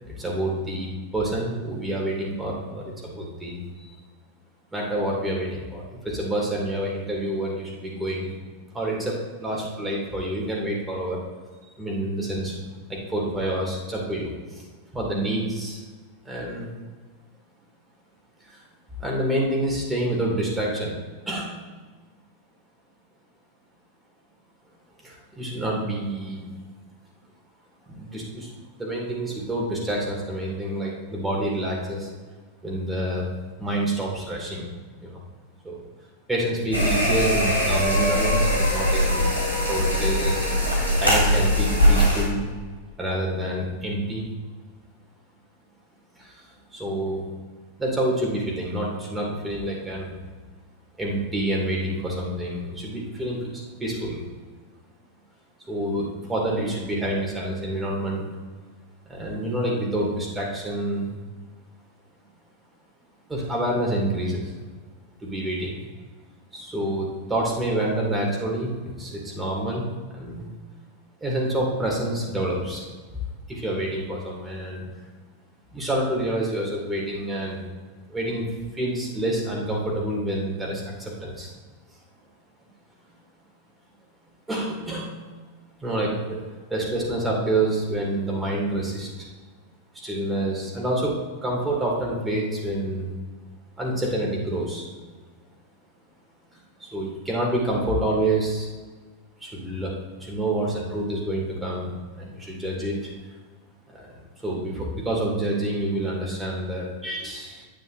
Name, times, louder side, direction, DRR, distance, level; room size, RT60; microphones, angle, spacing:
voice 1, 0.1-3.9 4.7-8.3 8.7-11.2 11.8-12.5 12.9-14.6 14.9-15.8 16.2-16.7 18.5-18.6 19.0-20.9 21.3-21.5 25.0-26.5 27.9-28.5 28.8-32.1 32.6-33.3 33.6-34.7 35.0-35.2 35.6-35.8 36.3-39.2 39.7-40.5 40.9-42.4 43.0-44.2 46.2-46.4 46.7-47.2 47.8-50.1 51.0-53.5 53.8-54.2 55.7-58.3 59.1-61.1 63.3-64.5 65.2-65.7 66.5-69.9 70.1-70.5 71.2-72.9 73.5-74.9 75.7-77.6 78.1-78.4 78.7-81.5 84.5-85.2 85.8-86.4 86.7-89.3 89.9-91.1 91.4-93.1 93.8-94.8 96.8-98.7 99.4-103.1 103.9-107.7, right 1 dB, 10° right, -3 dB, 2.5 m, -27 dB
sound 1, 36.7-42.2, equal, 85° left, 2.6 m, -21 dB
9.8 x 9.2 x 2.7 m, 1.4 s
figure-of-eight pair, 90°, 0 cm